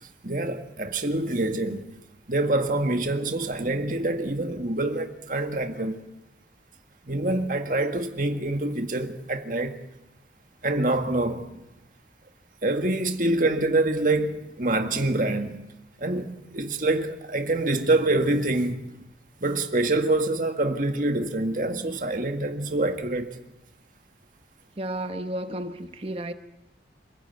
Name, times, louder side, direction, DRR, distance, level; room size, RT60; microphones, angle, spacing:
voice 1, 0.2-1.9 2.3-6.0 7.1-9.8 10.6-11.5 12.6-15.6 16.0-19.0 19.4-23.4, right 2 dB, 50° right, 1.9 m, -26 dB
voice 2, 24.8-26.3, right 1 dB, 35° right, 1.0 m, -32 dB
27.5 x 16.0 x 9.3 m
head